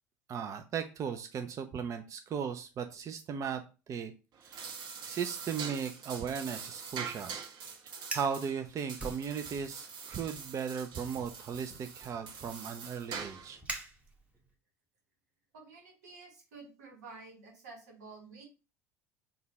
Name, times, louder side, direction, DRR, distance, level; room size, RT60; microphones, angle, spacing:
voice 1, 0.3-3.6 3.9-4.1 4.4-4.6 5.0-7.4 8.1-13.6, right 7 dB, 40° right, 7 dB, 0.5 m, -37 dB
sound 1, 4.3-13.6, right 6 dB, 55° right, 1.3 m, -44 dB
Fire, 8.1-8.4 9.0-9.8 10.1-10.5 11.1-14.5, right 2 dB, 15° right, 0.9 m, -44 dB
voice 2, 15.5-18.4, right 4 dB, 85° right, 1 dB, 1.3 m, -51 dB
3.9 x 2.3 x 4.0 m, 0.32 s
hypercardioid pair, 75°, 9 cm